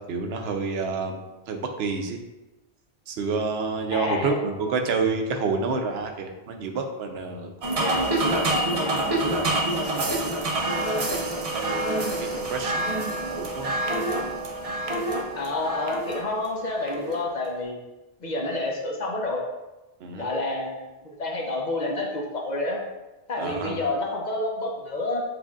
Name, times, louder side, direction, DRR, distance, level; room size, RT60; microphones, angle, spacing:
voice 1, 0.0-2.2 3.1-7.5 8.0-10.1 10.7-13.7 20.0-20.3 23.4-23.8, right 4 dB, 80° right, 4 dB, 0.8 m, -30 dB
voice 2, 3.9-4.4 15.3-17.8 18.2-19.4 20.1-22.8 23.3-25.2, left 2 dB, 50° left, -1 dB, 0.8 m, -29 dB
sound 1, 7.6-17.2, right 1 dB, 45° right, 0.5 m, -27 dB
7.6 x 2.6 x 2.4 m, 1.1 s
omnidirectional pair, 1.1 m